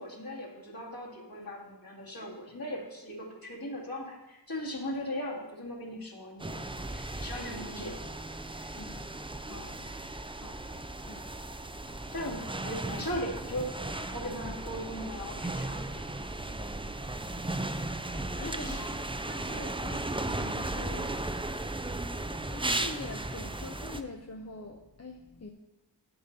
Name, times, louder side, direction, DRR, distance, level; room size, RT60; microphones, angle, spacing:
voice 1, 0.0-8.0 8.5-8.7 12.1-16.1 16.5-16.7 18.4-18.9, equal, 55° left, -5 dB, 2.4 m, -39 dB
sound 1, 6.4-24.0, right 2 dB, 15° right, 0.4 m, -36 dB
voice 2, 8.7-9.1 9.5-9.8 10.4-10.7 11.0-11.3 18.2-21.2 22.5-25.5, left 3 dB, 35° left, 2 dB, 0.7 m, -44 dB
8.6 x 8.2 x 4.0 m, 1.0 s
wide cardioid pair, 40°, 43 cm